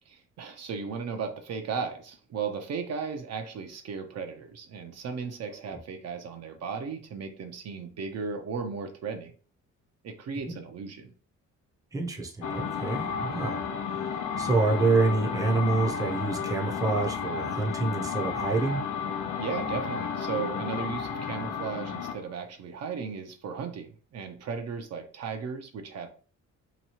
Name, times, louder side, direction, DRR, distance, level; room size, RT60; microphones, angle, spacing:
voice 1, 0.1-9.3 10.0-11.1 19.4-26.1, right 5 dB, 60° right, 4 dB, 0.6 m, -36 dB
voice 2, 11.9-13.7 14.4-18.8, right 3 dB, 10° right, 1 dB, 0.6 m, -27 dB
sound 1, 12.4-22.2, left 6 dB, 80° left, 0.6 m, -32 dB
2.9 x 2.3 x 2.8 m, 0.40 s
cardioid pair, 90°, 30 cm